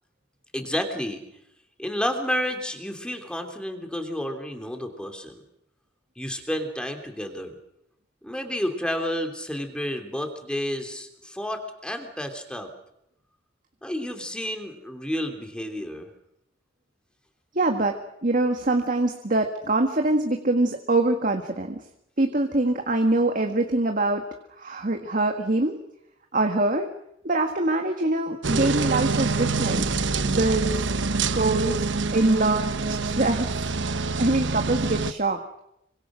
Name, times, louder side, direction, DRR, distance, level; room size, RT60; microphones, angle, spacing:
voice 1, 0.5-1.2 1.8-5.4 6.2-7.6 8.2-12.7 13.8-16.1, equal, 5° left, 5 dB, 3.3 m, -30 dB
voice 2, 17.6-18.0 18.2-21.8 22.2-24.2 24.6-25.8 26.3-26.9 27.2-29.9 30.2-30.9 31.3-31.8 32.1-33.5 33.9-35.4, right 2 dB, 45° right, 5 dB, 1.7 m, -24 dB
sound 1, 28.4-35.1, right 3 dB, 75° right, 1.0 m, -26 dB
26.5 x 24.5 x 6.3 m, 0.80 s
head